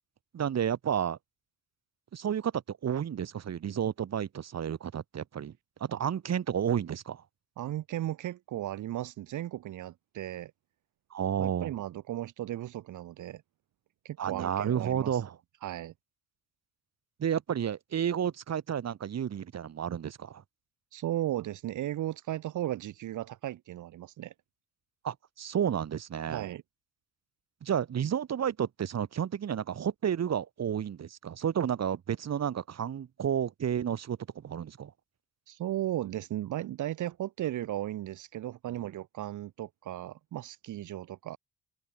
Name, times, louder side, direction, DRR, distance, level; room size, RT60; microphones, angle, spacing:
voice 1, 0.3-1.2 2.1-5.5 5.8-7.2 11.1-11.7 14.2-15.3 17.2-20.4 25.0-26.4 27.6-34.9, right 9 dB, 60° right, 7.9 m, -31 dB
voice 2, 7.6-10.5 11.4-13.4 14.0-15.2 15.6-15.9 20.9-24.3 26.3-26.6 35.5-41.4, right 13 dB, 80° right, 4.3 m, -36 dB
open air
cardioid pair, 90°, 30 cm